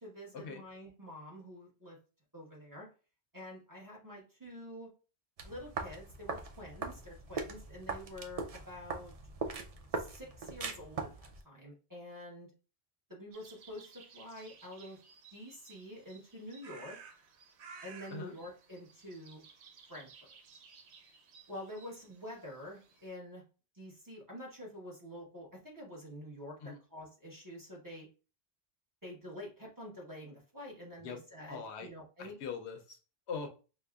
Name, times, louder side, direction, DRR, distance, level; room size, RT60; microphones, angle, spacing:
voice 1, 0.0-2.0 2.3-2.9 3.3-4.9 5.4-9.1 10.0-12.5 13.1-15.0 15.3-17.0 17.8-19.4 19.9-20.3 21.5-23.4 23.7-28.1 29.0-32.4, left 1 dB, 20° right, -4 dB, 1.0 m, -47 dB
sound 1, 5.4-11.4, right 4 dB, 55° right, 0.4 m, -41 dB
sound 2, 13.3-23.1, right 5 dB, 80° right, 0.9 m, -56 dB
voice 2, 31.5-31.9 32.2-33.0 33.3-33.5, left 5 dB, 80° left, 5 dB, 0.9 m, -41 dB
5.3 x 2.1 x 2.3 m, 0.34 s
omnidirectional pair, 1.1 m